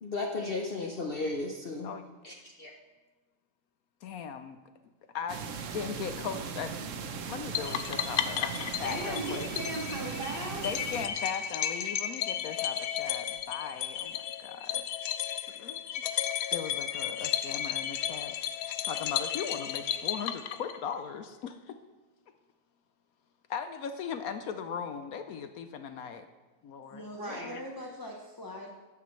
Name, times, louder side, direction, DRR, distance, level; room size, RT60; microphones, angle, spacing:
voice 1, 0.0-1.9 2.2-2.7, left 3 dB, 45° left, 1 dB, 0.9 m, -34 dB
voice 2, 4.0-4.6 5.1-6.9 7.3-9.5 10.6-14.8 15.5-15.8 16.5-18.4 18.9-21.8 23.5-26.3 26.6-27.0, left 7 dB, 70° left, 9 dB, 1.0 m, -38 dB
sound 1, 5.3-11.1, right 6 dB, 60° right, 1.0 m, -38 dB
sound 2, 7.5-21.0, left 10 dB, 85° left, 1.2 m, -34 dB
voice 3, 8.8-10.6 27.0-27.5, right 1 dB, 35° right, -2 dB, 2.2 m, -37 dB
voice 4, 26.9-28.7, left 1 dB, 20° left, -1 dB, 0.7 m, -42 dB
14.5 x 11.0 x 3.2 m, 1.2 s
omnidirectional pair, 1.7 m